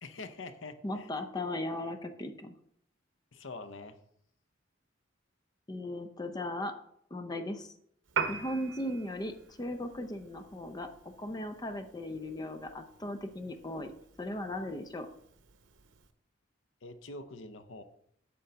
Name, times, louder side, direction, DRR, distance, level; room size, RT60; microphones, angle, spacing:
voice 1, 0.0-1.1 3.3-4.0 16.8-17.8, left 3 dB, 80° left, 10 dB, 0.7 m, -45 dB
voice 2, 0.8-2.6 5.7-6.7 7.1-7.7 8.3-10.9 11.2-13.9 14.2-15.1, left 1 dB, 20° left, 8 dB, 0.6 m, -37 dB
Piano, 8.1-16.1, right 5 dB, 85° right, 0.7 m, -43 dB
8.3 x 3.9 x 6.7 m, 0.70 s
head